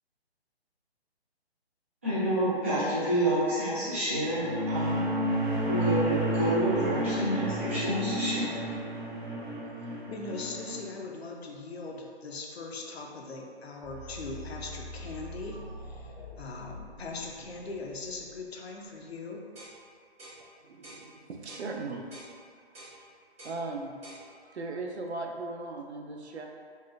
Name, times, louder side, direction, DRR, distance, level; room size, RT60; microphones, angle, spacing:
voice 1, 2.0-5.0 5.6-8.5, equal, 15° right, -14 dB, 0.4 m, -28 dB
sound 1, 4.2-10.8, right 1 dB, 45° right, 0.7 m, -31 dB
voice 2, 10.1-19.5, left 3 dB, 70° left, 0 dB, 0.6 m, -40 dB
sound 2, 13.8-18.7, left 1 dB, 30° left, 0.6 m, -44 dB
sound 3, 19.5-19.8 20.2-20.4 20.8-21.0 21.5-21.7 22.1-22.3 22.7-23.0 23.4-23.6 24.0-24.2, right 1 dB, 65° right, 1.4 m, -48 dB
voice 3, 20.4-22.1 23.4-26.5, right 3 dB, 85° right, 2 dB, 0.6 m, -38 dB
4.2 x 2.2 x 2.4 m, 2.1 s
figure-of-eight pair, 145°, 32 cm